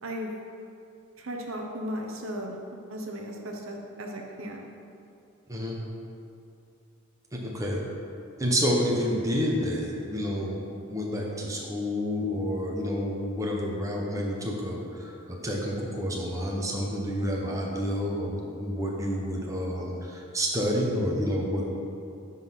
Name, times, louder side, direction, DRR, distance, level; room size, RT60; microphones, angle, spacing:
voice 1, 0.0-0.3 1.2-2.6 2.9-4.7, equal, 65° right, 1 dB, 0.9 m, -36 dB
voice 2, 7.3-7.8 8.4-21.7, equal, 15° right, -2 dB, 1.0 m, -29 dB
9.7 x 4.1 x 5.7 m, 2.6 s
head